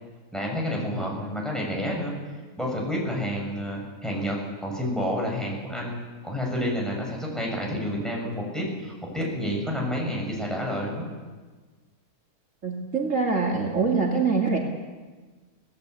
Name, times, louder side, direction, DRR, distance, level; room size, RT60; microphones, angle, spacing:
voice 1, 0.3-2.1 2.6-11.1, equal, ahead, -2 dB, 7.3 m, -29 dB
voice 2, 12.6-14.6, right 4 dB, 50° right, -1 dB, 2.8 m, -24 dB
26.5 x 17.5 x 8.4 m, 1.4 s
omnidirectional pair, 1.7 m